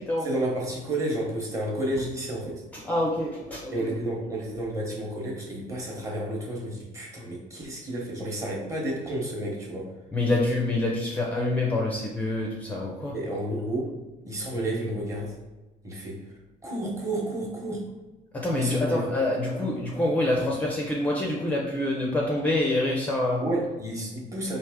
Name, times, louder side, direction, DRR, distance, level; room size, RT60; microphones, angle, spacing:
voice 1, 0.2-2.6 3.7-9.9 13.1-14.0 14.2-15.3 15.8-16.3 16.6-17.9 18.6-19.1 23.4-24.6, right 1 dB, 20° right, -2 dB, 1.0 m, -31 dB
voice 2, 2.7-3.9 10.1-13.1 18.3-23.4, left 1 dB, 10° left, -2 dB, 0.4 m, -26 dB
4.7 x 2.9 x 3.5 m, 1.1 s
cardioid pair, 175°, 15 cm